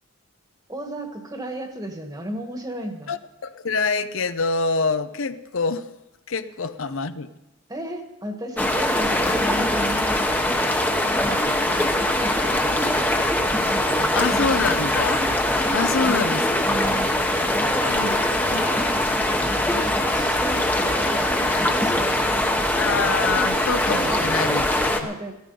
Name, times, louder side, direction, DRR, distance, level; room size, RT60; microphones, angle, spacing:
voice 1, 0.7-3.1 7.7-10.8 11.2-14.7 16.0-16.3 16.6-18.8 19.6-24.5 24.8-25.4, right 1 dB, 20° right, 5 dB, 1.4 m, -34 dB
voice 2, 3.1-5.9 6.3-7.3 14.1-15.2 15.7-16.5 17.6-18.2 18.5-18.6 22.8-24.7, left 4 dB, 80° left, 11 dB, 0.7 m, -25 dB
sound 1, 8.6-25.0, left 1 dB, 10° left, 0.9 m, -22 dB
16.5 x 13.0 x 5.4 m, 0.92 s
head